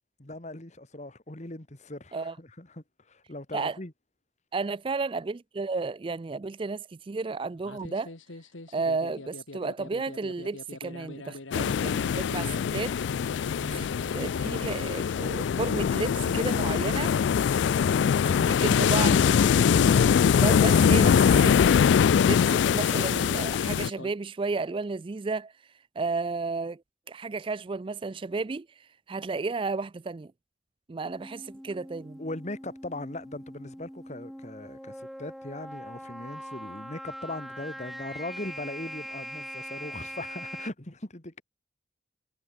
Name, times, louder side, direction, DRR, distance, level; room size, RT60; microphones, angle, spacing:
voice 1, 0.2-3.9 13.6-14.1 32.2-41.4, left 1 dB, 35° left, 1.9 m, -39 dB
voice 2, 4.5-8.1 8.7-13.0 13.7-17.2 18.3-20.1 20.3-21.6 22.2-25.5 26.0-26.8 27.1-30.3 30.9-32.2, right 4 dB, 25° right, 0.4 m, -33 dB
sound 1, 7.6-24.1, left 2 dB, 85° left, 2.3 m, -43 dB
sound 2, 11.5-23.9, left 7 dB, 65° left, 0.3 m, -23 dB
sound 3, 31.0-40.7, equal, ahead, 1.3 m, -42 dB
head